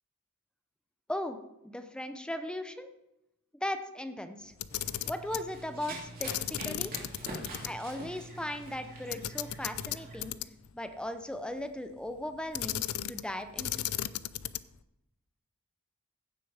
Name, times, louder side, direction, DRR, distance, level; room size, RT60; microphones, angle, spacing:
voice 1, 1.6-2.9 3.6-4.5 5.1-6.3 6.7-6.9 7.6-10.3 10.7-13.7, left 1 dB, 5° left, 9 dB, 0.6 m, -37 dB
Camera, 4.5-5.5 6.2-7.7 8.0-8.1 9.1-10.7 12.5-13.3 13.6-14.8, left 12 dB, 70° left, 0.4 m, -35 dB
Run, 4.7-10.2, right 2 dB, 45° right, 2.8 m, -45 dB
15.5 x 6.8 x 4.9 m, 0.89 s
head